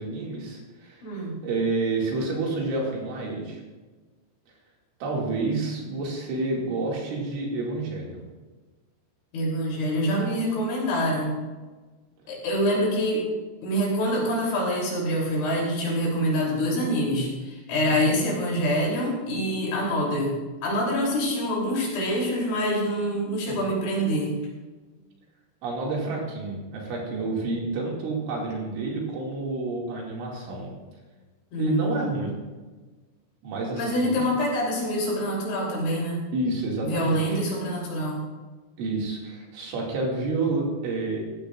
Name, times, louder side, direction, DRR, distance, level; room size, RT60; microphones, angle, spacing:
voice 1, 0.0-1.0 1.4-3.6 5.0-8.3 17.9-18.1 23.5-23.6 25.6-30.7 31.6-32.3 33.4-34.3 36.3-37.4 38.8-41.2, right 3 dB, 70° right, -2 dB, 4.6 m, -29 dB
voice 2, 1.0-1.4 9.3-11.3 12.3-13.3 13.6-20.4 20.6-24.3 31.5-32.1 33.7-36.2 36.8-38.2, equal, 65° left, -3 dB, 5.6 m, -25 dB
16.5 x 14.5 x 2.5 m, 1.3 s
omnidirectional pair, 6.0 m